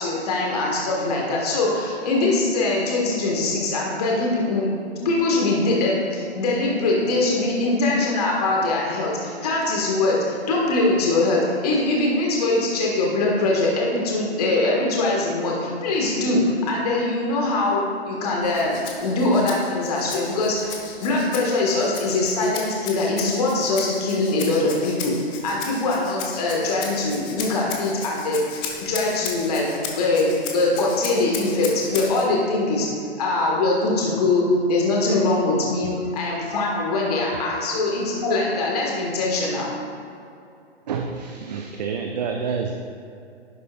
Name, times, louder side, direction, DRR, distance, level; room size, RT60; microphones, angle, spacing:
voice 1, 0.0-4.7 5.0-10.2 10.5-16.4 16.7-25.1 25.4-32.9 33.2-34.4 34.7-39.7, left 2 dB, 35° left, -2 dB, 1.6 m, -22 dB
Rattle (instrument), 18.4-32.3, left 6 dB, 15° left, 0.7 m, -36 dB
voice 2, 40.9-42.7, right 6 dB, 40° right, 3 dB, 0.7 m, -28 dB
11.0 x 10.5 x 2.4 m, 2.6 s
figure-of-eight pair, 120°, 32 cm